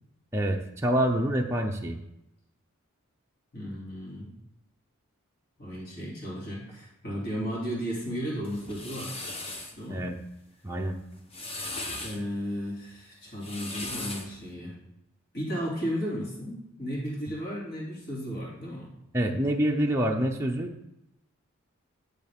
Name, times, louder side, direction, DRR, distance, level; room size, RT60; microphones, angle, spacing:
voice 1, 0.3-2.0 9.9-10.2 10.6-11.0 19.1-20.8, right 1 dB, 10° right, 0 dB, 0.6 m, -27 dB
voice 2, 3.5-4.3 5.6-9.2 9.8-10.0 12.0-14.7 15.3-18.9, equal, 50° left, -5 dB, 2.7 m, -34 dB
sound 1, 8.4-9.8 11.1-12.2 13.3-14.4, left 2 dB, 25° left, 0.9 m, -37 dB
10.5 x 6.6 x 3.6 m, 0.85 s
head